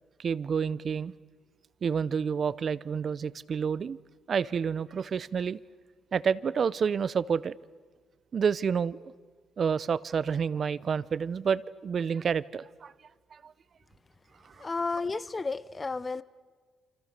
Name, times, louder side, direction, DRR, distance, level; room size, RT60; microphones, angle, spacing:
voice 1, 0.2-1.1 1.8-4.0 4.3-5.6 6.1-7.6 8.3-9.0 9.6-12.9 13.3-13.5 14.6-14.7, right 6 dB, 50° right, 0.7 m, -29 dB
voice 2, 14.6-16.2, left 4 dB, 25° left, 0.7 m, -32 dB
28.5 x 26.0 x 6.7 m
cardioid pair, 90°, 0 cm